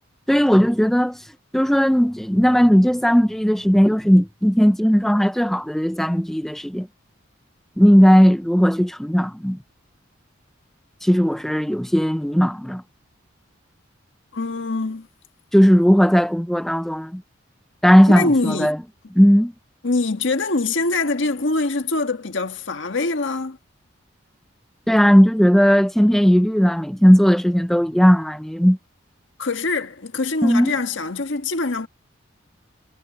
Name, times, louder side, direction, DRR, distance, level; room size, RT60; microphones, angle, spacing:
voice 1, 0.3-1.2 1.5-6.9 7.8-9.6 11.0-12.8 15.5-17.2 17.8-18.8 19.2-19.5 24.9-28.8 30.4-30.7, equal, ahead, 0.4 m, -16 dB
voice 2, 14.3-15.1 18.1-18.7 19.8-23.6 29.4-31.9, left 3 dB, 70° left, 1.5 m, -24 dB
head